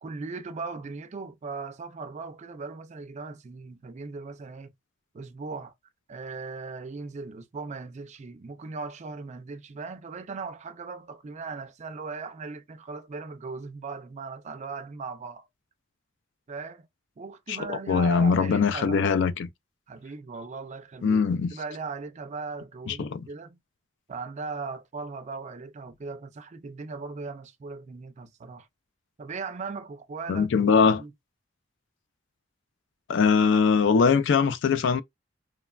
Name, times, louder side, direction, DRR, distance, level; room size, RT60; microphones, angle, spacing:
voice 1, 0.0-4.7 5.1-5.7 6.1-15.5 16.5-16.9 17.2-19.0 19.9-23.6 24.1-28.7 29.2-30.7 31.0-31.1, right 4 dB, 35° right, 0.4 m, -38 dB
voice 2, 17.5-19.5 21.0-21.5 22.9-23.2 30.3-31.0 33.1-35.0, left 5 dB, 65° left, 0.4 m, -22 dB
3.1 x 2.1 x 2.3 m
head